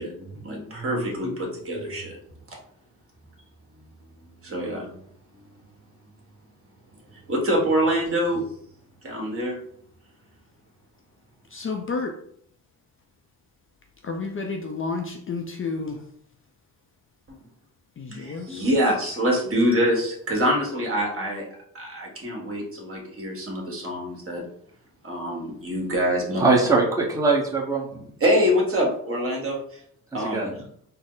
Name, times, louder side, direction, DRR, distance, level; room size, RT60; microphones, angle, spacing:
voice 1, 0.0-2.2 4.4-5.0 7.3-8.4 9.0-9.6 17.3-17.4 18.1-21.4 21.7-24.4 25.0-26.4 28.2-29.8 30.1-30.5, equal, 35° right, -2 dB, 1.5 m, -25 dB
voice 2, 11.5-12.1 14.0-16.0 18.0-18.7, left 4 dB, 35° left, 4 dB, 0.5 m, -31 dB
voice 3, 26.4-28.1 30.1-30.5, right 3 dB, 10° right, -3 dB, 1.0 m, -22 dB
4.0 x 2.0 x 3.9 m, 0.66 s
cardioid pair, 85°, 38 cm